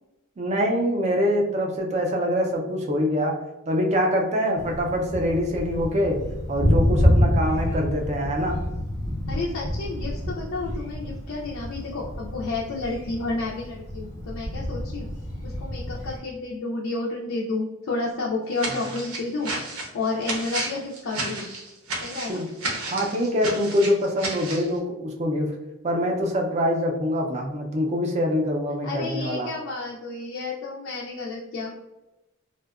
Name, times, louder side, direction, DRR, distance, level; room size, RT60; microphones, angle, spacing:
voice 1, 0.4-3.4 3.7-6.2 6.5-8.6 22.3-22.5 22.9-25.5 25.8-29.5, equal, 30° right, 1 dB, 0.4 m, -24 dB
Thunder, 4.5-16.2, left 1 dB, 15° left, 0.6 m, -27 dB
voice 2, 9.3-15.1 15.4-19.5 19.9-21.5 22.0-22.4 28.8-31.7, left 3 dB, 65° left, -3 dB, 0.4 m, -31 dB
sound 1, 18.6-24.7, right 2 dB, 80° right, 0.7 m, -32 dB
2.6 x 2.1 x 2.3 m, 0.97 s
head